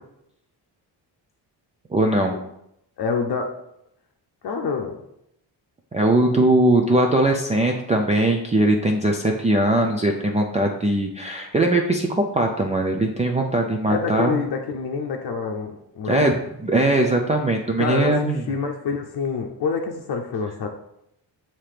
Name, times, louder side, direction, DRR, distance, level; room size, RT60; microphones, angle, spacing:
voice 1, 1.9-2.4 5.9-14.4 16.1-16.4 16.6-18.4, right 1 dB, 15° right, 1 dB, 0.4 m, -20 dB
voice 2, 3.0-3.6 4.4-5.0 13.8-16.4 17.8-20.7, left 5 dB, 60° left, 2 dB, 0.7 m, -27 dB
7.4 x 2.9 x 4.9 m, 0.79 s
cardioid pair, 145°, 44 cm